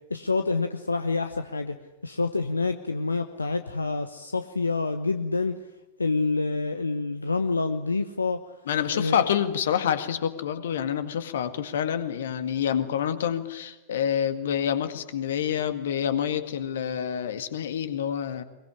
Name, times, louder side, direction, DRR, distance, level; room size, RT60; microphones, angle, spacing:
voice 1, 0.1-1.8 2.0-5.6 6.0-8.6 8.9-9.2, left 3 dB, 80° left, 9 dB, 1.0 m, -27 dB
voice 2, 8.7-18.4, left 9 dB, 60° left, 11 dB, 2.0 m, -27 dB
22.5 x 22.0 x 9.9 m, 1.0 s
figure-of-eight pair, 90°, 0 cm